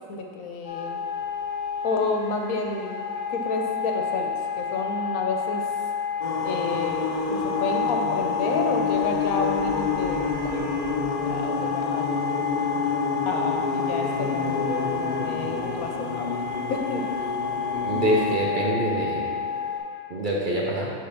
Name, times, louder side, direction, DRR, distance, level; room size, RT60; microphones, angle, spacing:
voice 1, 0.1-1.0 1.8-5.6 6.4-10.6 11.2-12.1 13.2-16.4 16.7-17.0, left 3 dB, 80° left, 2 dB, 1.2 m, -30 dB
sound 1, 0.6-19.8, left 6 dB, 35° left, 1.4 m, -30 dB
sound 2, 6.2-18.3, left 4 dB, 60° left, 0.4 m, -29 dB
voice 2, 17.7-19.3 20.1-20.9, right 1 dB, 50° right, -4 dB, 0.7 m, -25 dB
6.8 x 3.4 x 5.6 m, 2.3 s
omnidirectional pair, 1.5 m